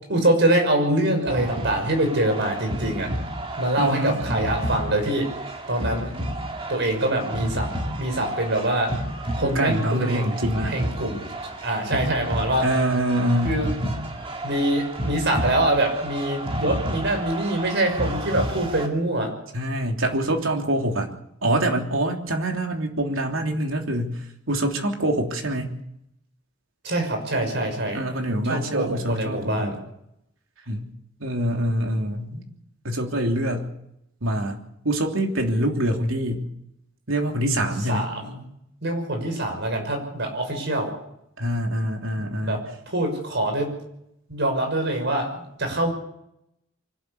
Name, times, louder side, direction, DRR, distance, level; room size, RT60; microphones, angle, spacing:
voice 1, 0.1-3.1 3.6-5.3 5.7-6.1 6.7-7.7 8.0-8.9 9.4-10.3 10.6-11.2 11.6-12.7 13.4-13.7 14.4-19.3 26.8-28.0 28.5-29.8 37.9-38.4 38.8-40.9 42.4-43.7 44.3-45.9, right 1 dB, 60° right, 5 dB, 6.2 m, -24 dB
sound 1, 1.3-18.9, right 1 dB, 25° right, 2.5 m, -31 dB
voice 2, 3.8-4.1 9.4-10.8 12.6-13.6 19.5-21.1 21.4-25.7 27.9-29.8 30.7-30.9 31.2-32.4 32.8-33.7 34.2-36.5 37.1-38.1 41.4-42.7, right 1 dB, 80° right, 2 dB, 3.2 m, -25 dB
24.5 x 12.5 x 8.5 m, 0.78 s
head